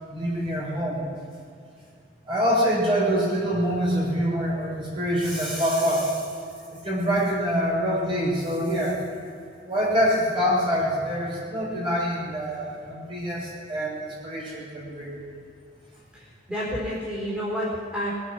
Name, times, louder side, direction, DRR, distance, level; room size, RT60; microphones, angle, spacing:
voice 1, 0.1-1.1 2.3-6.2 6.7-9.0 9.7-15.2, equal, 30° right, -5 dB, 4.5 m, -25 dB
voice 2, 16.1-18.1, equal, 5° right, -7 dB, 4.1 m, -30 dB
21.0 x 9.1 x 6.1 m, 2.5 s
head